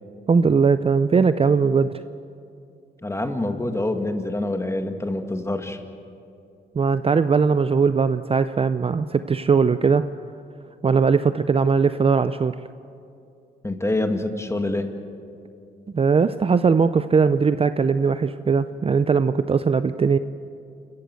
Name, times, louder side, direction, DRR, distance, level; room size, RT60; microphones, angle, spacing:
voice 1, 0.3-1.9 6.8-10.0 10.8-12.5 15.9-20.2, right 5 dB, 30° right, 12 dB, 0.5 m, -19 dB
voice 2, 3.0-5.8 13.6-14.9, left 2 dB, 15° left, 6 dB, 1.9 m, -26 dB
28.5 x 14.5 x 8.3 m, 2.5 s
cardioid pair, 95°, 20 cm